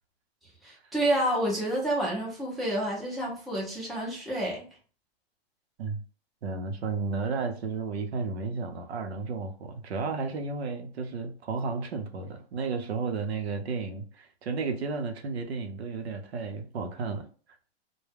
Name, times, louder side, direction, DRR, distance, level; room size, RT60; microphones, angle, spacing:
voice 1, 0.6-4.6, right 1 dB, ahead, 0.5 m, -29 dB
voice 2, 6.4-17.3, right 4 dB, 90° right, 0.7 m, -33 dB
2.2 x 2.1 x 3.3 m
hypercardioid pair, 145°, 31 cm